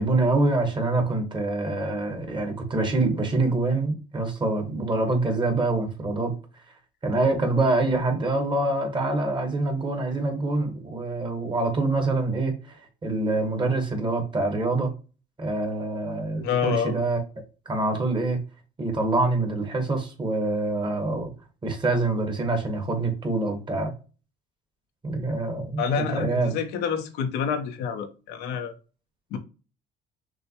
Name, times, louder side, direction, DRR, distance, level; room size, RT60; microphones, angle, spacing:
voice 1, 0.0-6.3 7.0-14.9 15.4-17.2 17.6-18.4 18.8-21.3 21.6-23.9 25.0-26.5, right 2 dB, 25° right, 1.4 m, -25 dB
voice 2, 16.4-17.0 25.8-28.7 29.3-29.4, left 6 dB, 90° left, 0.8 m, -27 dB
6.1 x 2.2 x 2.9 m
cardioid pair, 110°, 17 cm